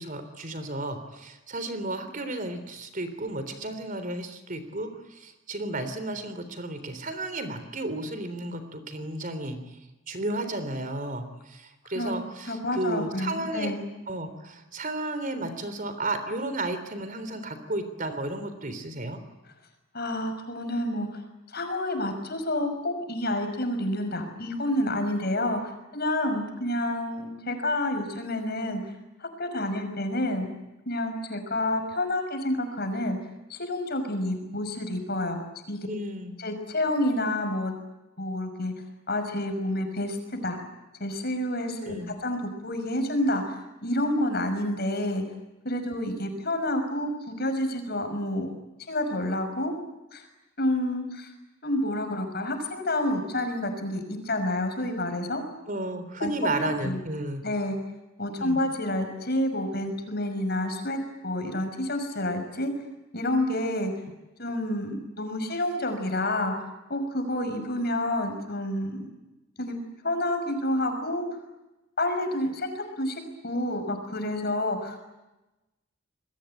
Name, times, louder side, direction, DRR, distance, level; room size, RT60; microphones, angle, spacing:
voice 1, 0.0-9.6 10.1-13.7 14.1-19.2 35.9-36.3 41.9-42.1 55.7-57.4 58.4-58.6, right 2 dB, 40° right, 10 dB, 3.6 m, -33 dB
voice 2, 12.5-13.8 19.9-21.2 21.5-25.6 25.9-28.8 29.2-30.5 30.9-33.2 33.5-35.4 35.7-35.8 36.4-37.7 38.2-38.7 39.1-40.2 40.4-40.6 41.0-45.2 45.6-48.5 48.9-49.7 50.1-50.3 50.6-51.3 51.6-55.4 56.2-57.0 57.4-57.8 58.2-62.7 63.1-63.9 64.4-69.0 69.6-69.8 70.0-71.3 72.0-75.0, left 1 dB, 50° left, 6 dB, 6.2 m, -29 dB
28.5 x 21.5 x 9.1 m, 1.0 s
head